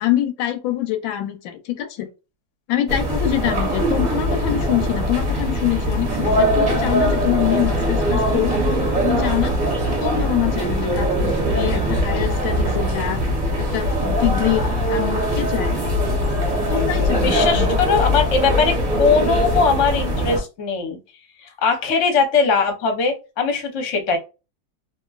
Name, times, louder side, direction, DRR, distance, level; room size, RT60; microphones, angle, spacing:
voice 1, 0.0-2.1 2.7-8.6 9.0-9.5 10.0-13.2 13.6-15.9 16.7-18.0, left 12 dB, 90° left, 1.3 m, -25 dB
sound 1, 2.9-20.4, equal, 35° right, 0.7 m, -21 dB
voice 2, 17.2-21.0 21.4-24.2, left 5 dB, 55° left, 0.9 m, -20 dB
2.9 x 2.6 x 2.3 m
omnidirectional pair, 2.1 m